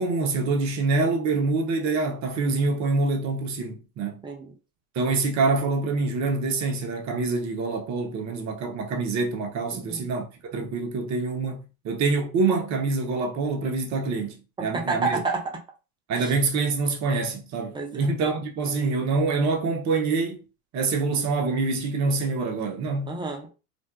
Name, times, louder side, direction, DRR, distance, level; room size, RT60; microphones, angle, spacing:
voice 1, 0.0-4.2 4.9-15.2 16.1-20.4 20.7-23.1, right 3 dB, 35° right, 0.7 m, -26 dB
voice 2, 4.2-4.5 9.7-10.0 14.6-15.6 16.2-16.3 17.7-18.1 23.1-23.5, right 3 dB, 10° right, 0.4 m, -30 dB
2.5 x 2.2 x 2.2 m
hypercardioid pair, 85°, 46 cm